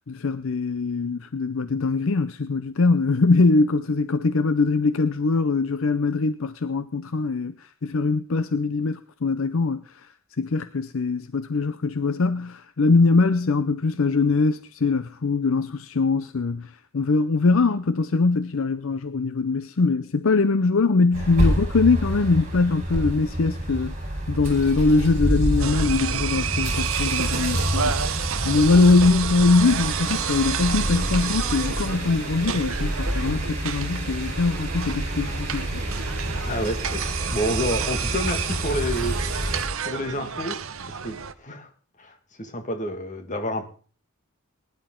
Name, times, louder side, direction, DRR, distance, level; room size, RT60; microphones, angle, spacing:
voice 1, 0.1-10.1 10.4-23.9 24.3-35.8, left 3 dB, 65° left, 0.6 m, -22 dB
sound 1, 21.1-39.7, equal, 35° right, 4.3 m, -28 dB
sound 2, 25.6-41.3, right 8 dB, 65° right, 0.8 m, -30 dB
voice 2, 36.4-37.0 37.3-40.7 41.0-41.7 42.0-43.7, equal, 35° left, 1.9 m, -29 dB
20.0 x 11.0 x 3.8 m
head